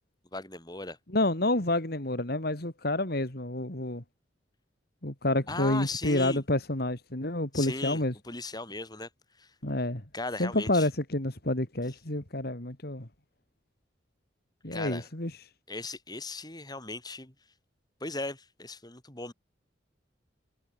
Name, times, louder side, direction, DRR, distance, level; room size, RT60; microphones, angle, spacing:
voice 1, 0.3-1.0 5.5-6.4 7.5-9.1 9.4-9.5 10.1-10.9 14.7-15.1 15.7-17.3 18.0-19.3, left 3 dB, 20° left, 5.6 m, -37 dB
voice 2, 1.1-4.0 5.0-8.1 9.6-10.0 10.4-13.1 14.6-15.3, left 1 dB, 55° left, 3.0 m, -29 dB
head